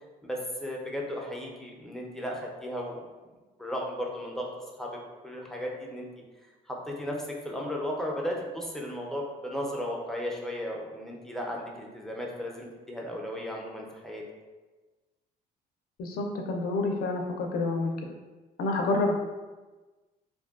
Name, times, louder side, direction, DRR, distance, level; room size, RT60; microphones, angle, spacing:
voice 1, 0.2-3.0 3.6-4.5 4.8-4.9 5.2-6.1 6.7-14.2, equal, ahead, -2 dB, 0.4 m, -35 dB
voice 2, 16.0-17.9 18.6-19.1, left 2 dB, 60° left, 2 dB, 0.4 m, -28 dB
2.5 x 2.1 x 2.3 m, 1.2 s
cardioid pair, 110°, 17 cm